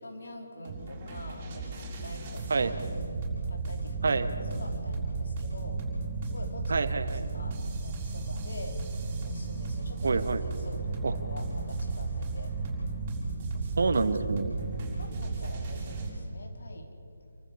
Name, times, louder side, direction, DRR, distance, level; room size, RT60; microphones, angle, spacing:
voice 1, 0.0-2.7 3.5-4.2 4.5-5.8 6.2-6.9 7.3-8.8 9.2-10.2 10.6-12.5 15.0-16.9, left 1 dB, 65° left, 3 dB, 3.8 m, -45 dB
sound 1, 0.7-16.1, right 3 dB, 30° right, 6.6 m, -34 dB
voice 2, 6.7-7.2 10.0-10.4 11.0-11.1 13.8-14.6, right 4 dB, 65° right, 10 dB, 1.4 m, -27 dB
sound 2, 7.7-12.9, equal, 15° left, 5.6 m, -51 dB
28.5 x 14.0 x 7.1 m, 2.7 s
figure-of-eight pair, 155°, 0 cm